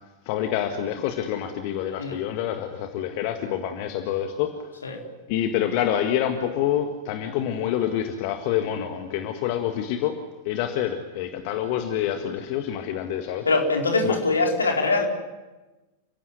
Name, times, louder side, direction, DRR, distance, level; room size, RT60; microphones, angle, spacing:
voice 1, 0.3-4.7 5.3-10.2 10.5-13.5 14.0-14.2, left 10 dB, 45° left, 6 dB, 1.9 m, -27 dB
voice 2, 13.5-15.1, left 3 dB, 75° left, 2 dB, 4.2 m, -22 dB
30.0 x 16.0 x 9.7 m, 1.2 s
figure-of-eight pair, 90°, 0 cm